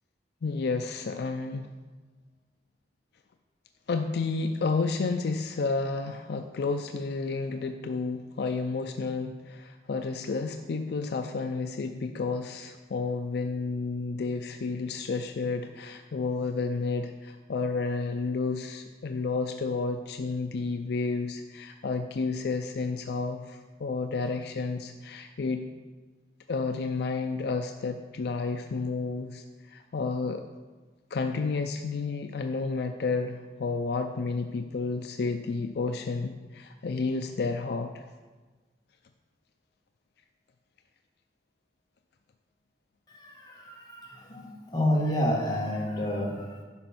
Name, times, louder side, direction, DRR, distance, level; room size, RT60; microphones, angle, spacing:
voice 1, 0.4-1.7 3.9-25.7 26.5-30.5 31.1-38.0, left 4 dB, 65° left, 6 dB, 0.4 m, -31 dB
voice 2, 43.1-46.6, equal, 20° left, -3 dB, 1.8 m, -29 dB
10.0 x 5.1 x 6.0 m, 1.3 s
head